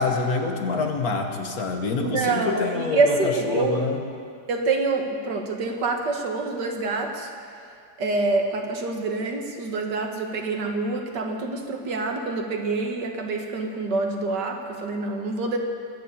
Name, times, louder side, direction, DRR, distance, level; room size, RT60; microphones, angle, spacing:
voice 1, 0.0-4.0, left 4 dB, 60° left, 4 dB, 1.7 m, -26 dB
voice 2, 2.0-3.9 4.5-7.3 8.0-15.6, right 3 dB, 85° right, 3 dB, 2.1 m, -26 dB
21.5 x 7.3 x 8.5 m, 2.3 s
omnidirectional pair, 1.8 m